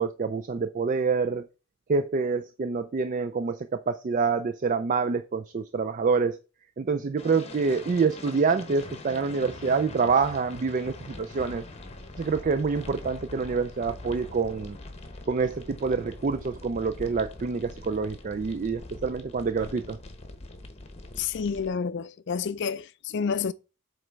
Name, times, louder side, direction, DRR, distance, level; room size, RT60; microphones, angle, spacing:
voice 1, 0.0-1.5 1.9-6.4 6.8-11.7 12.2-14.8 15.3-20.0, right 5 dB, 35° right, 0.3 m, -27 dB
sound 1, 7.2-21.7, left 2 dB, 30° left, 1.0 m, -43 dB
voice 2, 21.2-23.5, left 6 dB, 55° left, 0.4 m, -29 dB
7.7 x 3.3 x 5.1 m
head